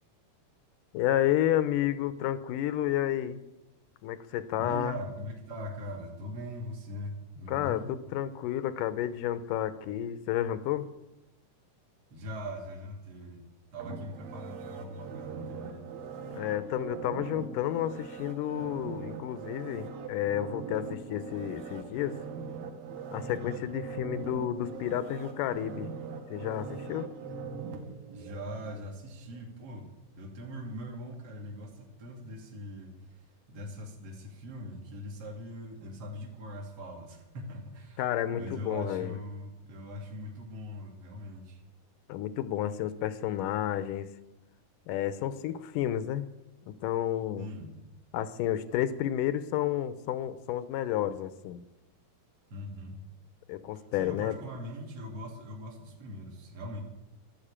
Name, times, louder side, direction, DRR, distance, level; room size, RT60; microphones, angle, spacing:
voice 1, 0.9-3.4 4.0-4.9 7.5-10.9 16.3-22.2 23.1-25.9 26.3-27.1 38.0-39.1 42.1-44.1 44.9-46.3 46.7-47.5 48.1-51.6 53.5-54.4, left 12 dB, 85° left, 14 dB, 2.3 m, -31 dB
voice 2, 4.6-7.9 12.1-13.4 13.7-15.8 23.4-23.7 28.1-29.9 30.1-38.0 38.3-41.6 47.4-47.8 52.5-53.0 53.7-56.8, equal, 30° right, 0 dB, 2.9 m, -41 dB
sound 1, 13.8-28.8 29.3-29.4, right 5 dB, 90° right, 3.1 m, -41 dB
12.0 x 11.5 x 8.7 m, 0.98 s
omnidirectional pair, 3.8 m